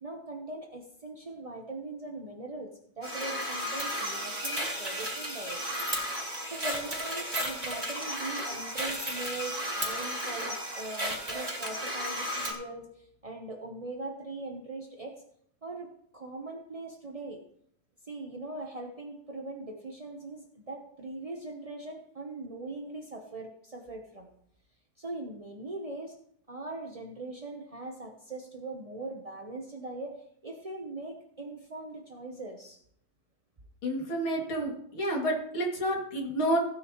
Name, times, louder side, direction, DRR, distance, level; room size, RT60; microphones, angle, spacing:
voice 1, 0.0-5.6 6.4-15.2 15.6-15.9 16.1-17.4 18.1-24.3 25.0-26.1 26.5-30.2 30.4-32.8, right 2 dB, 45° right, 2 dB, 0.4 m, -41 dB
sound 1, 3.0-12.5, equal, 15° right, 2.8 m, -34 dB
voice 2, 33.8-36.6, right 1 dB, 85° left, -1 dB, 3.4 m, -29 dB
16.5 x 9.7 x 3.1 m, 0.69 s
omnidirectional pair, 2.2 m